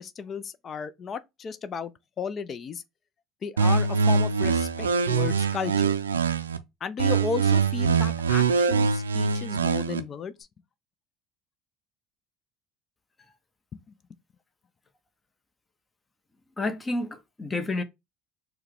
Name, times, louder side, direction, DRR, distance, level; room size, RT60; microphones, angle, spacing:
voice 1, 0.0-1.9 2.2-2.8 3.4-5.9 6.8-10.3, left 6 dB, 40° left, 0.4 m, -34 dB
sound 1, 3.6-6.6 7.0-10.0, right 5 dB, 90° right, 0.3 m, -23 dB
voice 2, 16.6-17.8, left 2 dB, 20° left, 0.9 m, -30 dB
4.5 x 2.2 x 3.4 m
hypercardioid pair, 65°, 0 cm